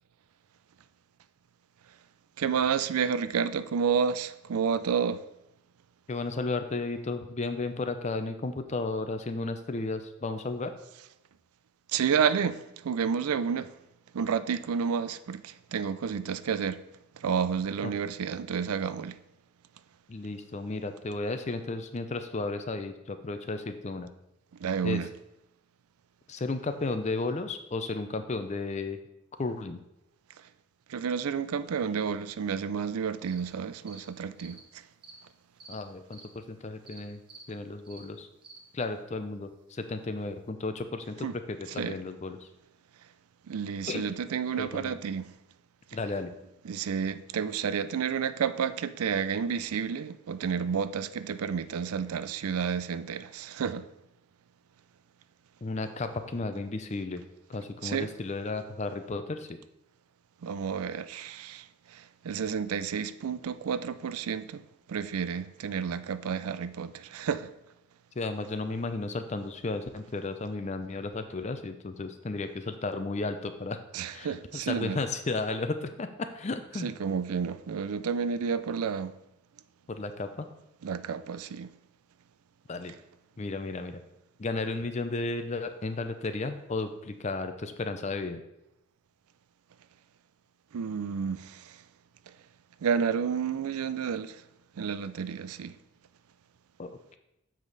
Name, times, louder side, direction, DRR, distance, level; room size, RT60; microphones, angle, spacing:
voice 1, 2.4-5.3 11.9-13.7 14.1-16.8 17.1-19.2 24.6-25.1 30.9-34.8 41.2-41.4 41.8-42.0 43.5-45.3 46.6-53.9 57.8-58.1 60.4-67.5 73.9-75.0 76.8-79.1 80.8-81.7 90.7-91.8 92.3-92.4 92.8-94.4 94.8-95.8, right 6 dB, 85° right, 0.4 m, -30 dB
voice 2, 6.1-10.7 17.8-17.9 20.1-24.1 24.8-25.0 26.3-29.0 29.4-29.8 35.7-37.2 37.5-38.3 38.7-42.5 43.9-44.0 44.6-45.0 45.9-46.3 55.6-57.2 57.5-59.5 68.2-73.8 74.1-76.9 79.9-80.5 82.7-82.9 83.4-84.0 84.4-88.4 96.8-96.9, left 3 dB, 30° left, 0.5 m, -33 dB
sound 1, 33.3-33.4 33.9-34.0 34.4-34.6 35.0-35.2 35.6-35.7 36.1-36.3 36.9-37.0 37.3-37.4 37.8-38.0 38.4-38.6, right 3 dB, 25° right, 0.9 m, -49 dB
7.4 x 5.0 x 4.0 m
head